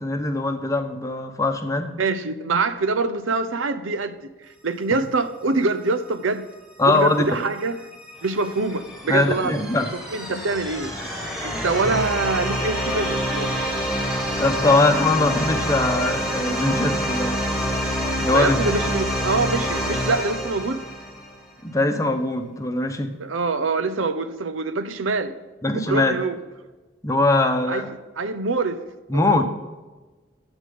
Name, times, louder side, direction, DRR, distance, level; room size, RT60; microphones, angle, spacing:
voice 1, 0.0-1.9 4.9-5.0 6.8-7.3 9.1-9.9 14.4-17.6 18.2-18.6 21.6-23.1 25.6-26.1 27.0-27.9 29.1-29.5, left 2 dB, 15° left, 6 dB, 0.9 m, -21 dB
voice 2, 2.0-4.3 4.6-6.4 6.8-7.8 8.2-9.6 9.9-10.9 11.4-13.7 18.3-20.8 23.2-25.3 25.7-26.4 27.7-28.8 29.1-29.5, right 3 dB, 80° right, 10 dB, 0.8 m, -25 dB
sound 1, 7.6-21.4, equal, ahead, 1.8 m, -27 dB
12.0 x 8.1 x 3.8 m, 1.2 s
head